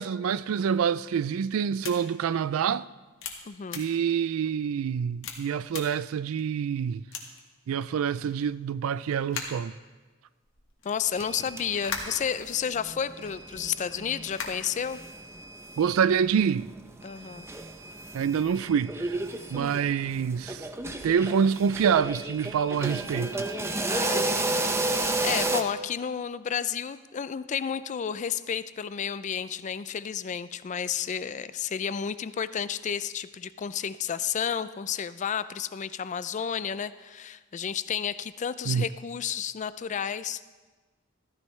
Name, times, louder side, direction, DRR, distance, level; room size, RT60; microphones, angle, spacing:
voice 1, 0.0-2.9 3.7-7.0 7.7-9.7 15.8-16.7 18.1-19.2 19.5-20.7 21.0-23.3 23.9-24.0 38.7-38.9, right 7 dB, 75° right, 0.3 m, -26 dB
sound 1, 1.8-1.9 2.5-2.6 3.2-3.3 3.7-3.8 4.4-4.5 5.2-5.4 5.7-5.8 6.4-6.5 7.1-7.4 8.3-8.4 9.1-9.6 10.4-12.7 13.1-13.3 14.1-14.8, left 6 dB, 65° left, 1.7 m, -38 dB
voice 2, 3.5-3.8 10.8-15.0 17.0-17.5 23.9-40.6, left 7 dB, 35° left, 0.4 m, -32 dB
sound 2, 11.1-12.6 12.8-16.1 16.4-16.5 17.0-25.6, right 2 dB, 15° right, 0.6 m, -32 dB
14.5 x 14.0 x 3.2 m
head